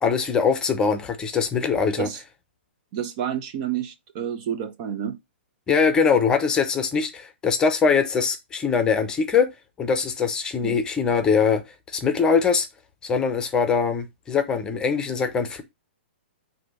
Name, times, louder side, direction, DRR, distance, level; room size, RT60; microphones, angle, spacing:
voice 1, 0.0-2.1 5.7-9.5 9.8-11.6 11.9-12.7 13.0-15.6, left 5 dB, 10° left, 0.8 m, -22 dB
voice 2, 2.9-5.2 10.6-10.8, right 9 dB, 35° right, 0.7 m, -29 dB
6.4 x 2.8 x 5.4 m
hypercardioid pair, 155°, 6 cm